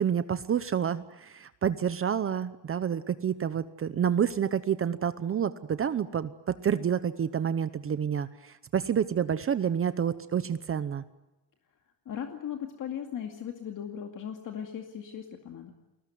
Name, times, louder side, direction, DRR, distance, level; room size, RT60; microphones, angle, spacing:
voice 1, 0.0-11.0, right 8 dB, 30° right, 13 dB, 0.9 m, -29 dB
voice 2, 12.1-15.7, left 9 dB, 50° left, 4 dB, 2.3 m, -38 dB
29.5 x 21.0 x 9.3 m, 1.0 s
cardioid pair, 165°, 41 cm